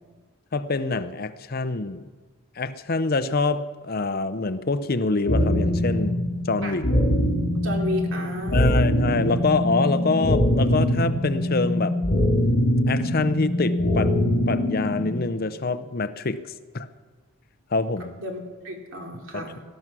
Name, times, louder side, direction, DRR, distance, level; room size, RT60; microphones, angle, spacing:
voice 1, 0.5-2.1 2.6-6.2 6.4-6.8 8.5-12.0 12.9-14.1 14.5-16.4 16.7-16.9 17.7-18.2 19.3-19.5, left 3 dB, 45° left, 12 dB, 0.6 m, -25 dB
sound 1, 5.3-15.2, left 1 dB, 70° left, 3.1 m, -23 dB
voice 2, 7.5-8.8 18.2-19.6, left 1 dB, 60° right, 1 dB, 2.9 m, -33 dB
19.0 x 12.5 x 6.1 m, 1.4 s
head